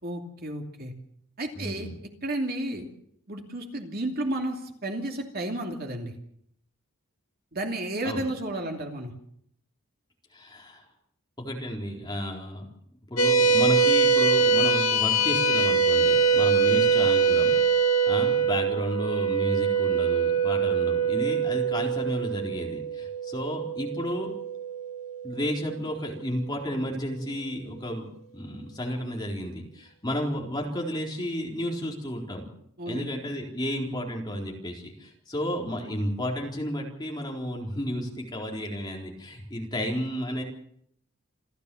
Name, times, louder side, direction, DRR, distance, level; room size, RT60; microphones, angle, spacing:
voice 1, 0.0-0.9 1.4-1.9 2.2-2.9 3.3-6.1 7.5-9.1 16.7-16.8 32.8-33.1, right 1 dB, 45° right, 3 dB, 2.7 m, -32 dB
voice 2, 1.5-2.0 8.0-8.2 10.3-10.8 11.4-12.7 13.1-24.3 25.2-28.1 28.3-32.5 32.9-40.4, equal, 20° left, -1 dB, 4.1 m, -32 dB
sound 1, 13.2-25.8, right 5 dB, 70° left, 2.2 m, -23 dB
28.0 x 14.0 x 7.1 m, 0.71 s
head